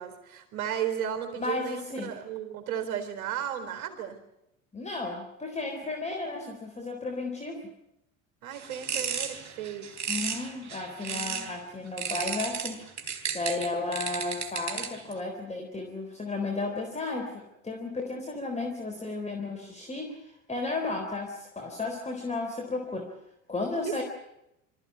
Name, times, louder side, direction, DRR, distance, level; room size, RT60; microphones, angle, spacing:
voice 1, 0.0-4.2 8.4-9.9 11.1-11.5 23.8-24.0, right 9 dB, 65° right, 6 dB, 4.3 m, -34 dB
voice 2, 1.4-2.1 4.7-7.7 10.1-12.8 13.3-23.1 23.5-24.0, left 3 dB, 15° left, 2 dB, 3.7 m, -34 dB
sound 1, 8.5-11.5 12.0-15.1, right 7 dB, 45° right, 3.7 m, -34 dB
25.0 x 14.5 x 9.7 m, 0.85 s
hypercardioid pair, 70°, 40 cm